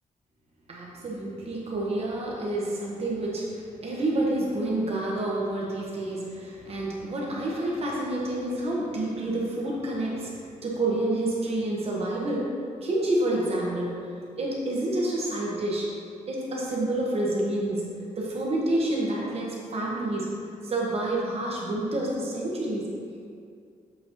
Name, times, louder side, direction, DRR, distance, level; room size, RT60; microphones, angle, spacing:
voice 1, 0.7-12.5 12.8-13.9 14.4-15.9 16.3-17.8 18.2-20.3 20.6-22.8, right 1 dB, 45° right, -4 dB, 1.1 m, -28 dB
7.7 x 4.2 x 2.9 m, 2.4 s
cardioid pair, 125°, 14 cm